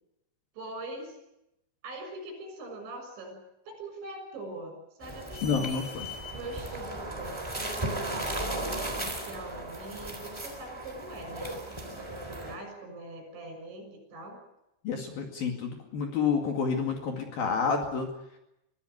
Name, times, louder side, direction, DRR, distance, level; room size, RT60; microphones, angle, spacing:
voice 1, 0.5-1.2 1.8-3.4 3.7-5.9 6.3-14.4, right 2 dB, 65° right, 5 dB, 8.8 m, -42 dB
sound 1, 5.0-12.6, right 1 dB, 5° right, 2.7 m, -36 dB
voice 2, 5.4-6.1 14.8-18.1, left 5 dB, 55° left, 3 dB, 3.6 m, -29 dB
24.0 x 16.0 x 9.5 m, 0.85 s
omnidirectional pair, 5.8 m